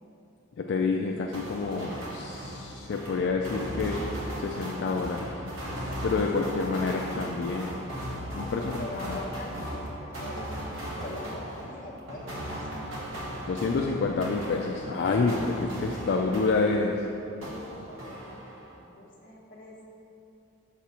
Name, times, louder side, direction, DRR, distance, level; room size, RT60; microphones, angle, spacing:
voice 1, 0.6-4.0 4.4-5.3 6.0-7.8 8.3-8.6 9.0-9.2 13.5-17.0, left 4 dB, 60° left, 1 dB, 0.3 m, -28 dB
sound 1, 1.3-17.1 17.4-18.8, equal, 85° right, 1.2 m, -37 dB
voice 2, 8.3-12.7 17.5-19.8, left 1 dB, 40° left, -3 dB, 0.9 m, -43 dB
6.1 x 6.0 x 2.8 m, 2.8 s
head